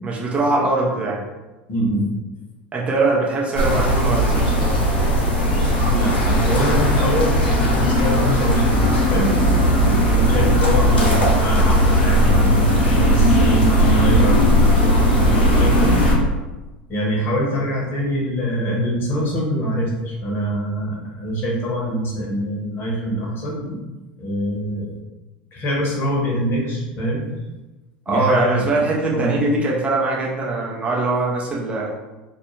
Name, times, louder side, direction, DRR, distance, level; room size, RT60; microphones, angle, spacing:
voice 1, 0.0-1.2 2.7-4.7 28.1-31.9, right 2 dB, 20° right, -4 dB, 0.6 m, -21 dB
voice 2, 1.7-2.1 5.8-9.4 9.8-16.1 16.9-23.8 24.2-24.9 25.5-27.3 28.1-28.8 29.1-29.5, equal, 40° left, -3 dB, 0.9 m, -24 dB
sound 1, 3.5-16.1, equal, 85° left, 0.7 m, -17 dB
2.3 x 2.1 x 3.0 m, 1.1 s
hypercardioid pair, 75°, 5 cm